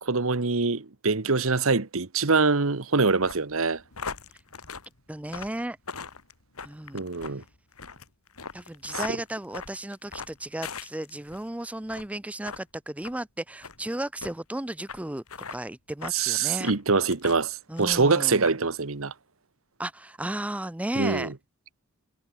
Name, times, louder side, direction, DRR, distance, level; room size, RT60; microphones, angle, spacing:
voice 1, 0.0-3.8 6.9-7.4 8.9-9.0 16.1-19.1 20.9-21.3, right 4 dB, 65° right, 1.2 m, -24 dB
sound 1, 3.2-11.4 11.8-12.1 12.4-12.6 13.0-13.2 13.6-13.8 14.2-14.3 14.9-15.0 15.3-15.6 16.0-16.2 16.6-17.4 17.8-18.1 18.4-18.6, left 5 dB, 85° left, 3.0 m, -40 dB
voice 2, 5.1-5.8 6.6-7.0 8.5-15.2 15.5-16.7 17.7-18.5 19.8-21.3, right 1 dB, 5° right, 0.5 m, -34 dB
head